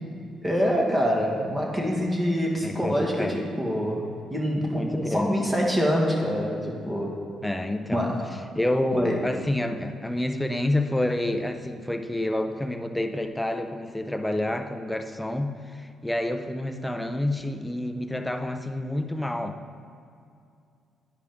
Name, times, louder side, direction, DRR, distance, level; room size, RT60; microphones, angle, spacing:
voice 1, 0.4-7.2 7.9-8.2 8.9-9.3, equal, 15° right, -1 dB, 1.5 m, -25 dB
voice 2, 2.6-3.5 4.7-5.4 7.4-8.1 8.5-19.8, left 1 dB, 5° left, 6 dB, 0.5 m, -28 dB
10.0 x 4.9 x 3.5 m, 2.4 s
cardioid pair, 90°, 0 cm